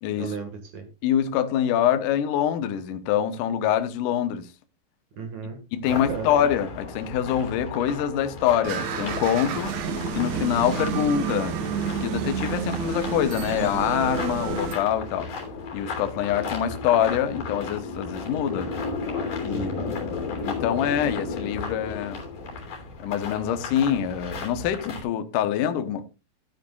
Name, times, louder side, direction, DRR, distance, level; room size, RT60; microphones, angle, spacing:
voice 1, 0.2-0.9 5.2-6.3 19.5-19.9, right 5 dB, 55° right, 2.5 m, -35 dB
voice 2, 1.0-4.5 5.7-9.7 10.1-11.6 12.0-15.3 15.7-18.7 19.4-19.7 20.1-22.2 23.0-26.0, left 10 dB, 75° left, 1.9 m, -25 dB
sound 1, 5.9-25.0, left 4 dB, 50° left, 4.4 m, -35 dB
sound 2, 8.6-14.7, right 6 dB, 70° right, 3.2 m, -29 dB
14.5 x 9.5 x 2.4 m
omnidirectional pair, 5.2 m